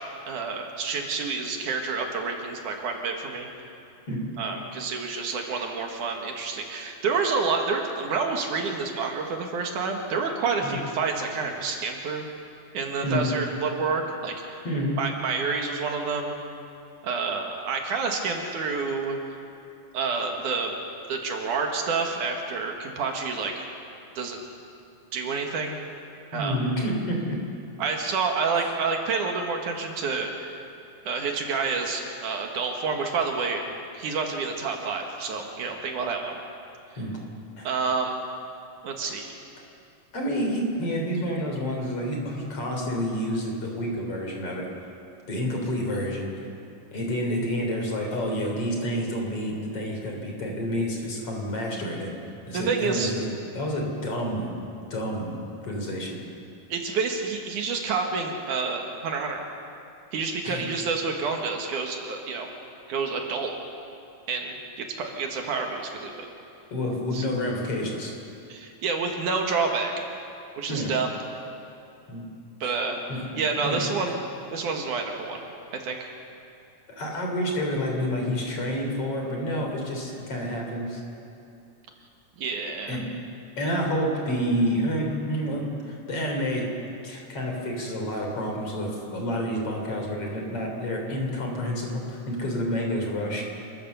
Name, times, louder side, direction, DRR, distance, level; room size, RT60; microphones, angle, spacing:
voice 1, 0.3-3.5 4.4-12.3 12.7-14.6 15.0-16.4 17.0-19.2 19.9-20.7 21.1-23.6 24.2-24.4 25.1-25.8 26.3-26.6 27.8-30.6 31.1-33.6 33.9-36.4 37.6-38.2 38.8-39.3 52.5-53.1 56.7-59.5 60.1-62.5 62.9-63.5 64.3-66.3 67.1-67.2 68.5-69.9 70.6-71.1 72.6-73.0 73.4-74.2 74.5-75.4 75.7-76.1 82.4-83.0, right 4 dB, 70° right, 2 dB, 3.1 m, -28 dB
voice 2, 14.6-15.0 26.3-27.4 37.0-37.1 37.6-37.7 40.1-44.7 45.3-46.3 46.9-52.1 52.5-54.5 54.9-56.2 60.4-60.6 66.7-68.1 70.7-70.9 72.1-72.3 72.6-72.7 73.1-73.2 73.6-73.8 76.9-81.0 82.9-83.0 83.6-86.7 87.0-93.4, equal, 45° left, 1 dB, 4.2 m, -29 dB
29.5 x 14.0 x 6.9 m, 2.6 s
omnidirectional pair, 3.7 m